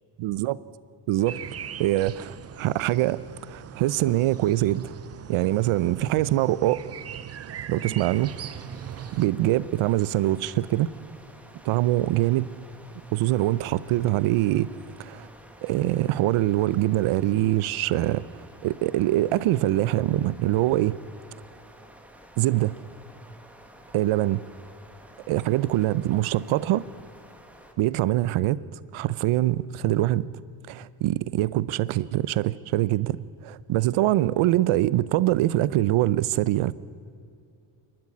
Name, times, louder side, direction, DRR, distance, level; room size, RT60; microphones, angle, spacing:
voice 1, 0.2-0.6 1.1-1.4 1.8-3.2 3.5-4.9 5.3-6.8 7.7-8.3 9.1-10.9 11.7-12.5 13.1-14.7 15.0-15.3 15.6-18.2 18.6-21.0 22.4-22.7 23.9-24.4 25.3-26.8 27.8-28.6 28.9-30.3 30.7-36.7, right 15 dB, 80° right, 18 dB, 0.8 m, -23 dB
sound 1, 1.3-9.3, right 9 dB, 30° right, 0.5 m, -40 dB
sound 2, 8.0-27.7, right 1 dB, 5° right, 1.4 m, -51 dB
27.0 x 12.5 x 9.8 m, 2.4 s
cardioid pair, 170°, 49 cm